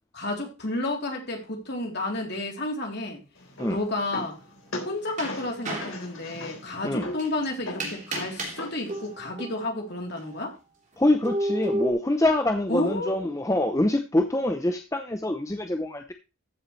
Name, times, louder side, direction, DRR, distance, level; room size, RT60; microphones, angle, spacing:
voice 1, 0.1-3.2 3.7-4.4 4.8-10.6 12.7-13.3, left 2 dB, 50° left, 3.4 m, -31 dB
sound 1, 3.4-9.2, left 2 dB, 75° left, 4.2 m, -40 dB
sound 2, 3.6-3.8 4.8-6.1 7.2-7.3 7.8-9.7 10.2-10.3 11.2-11.9, right 1 dB, 35° right, 3.8 m, -31 dB
voice 2, 11.0-16.1, left 1 dB, 15° left, 0.7 m, -25 dB
14.5 x 7.8 x 3.2 m
head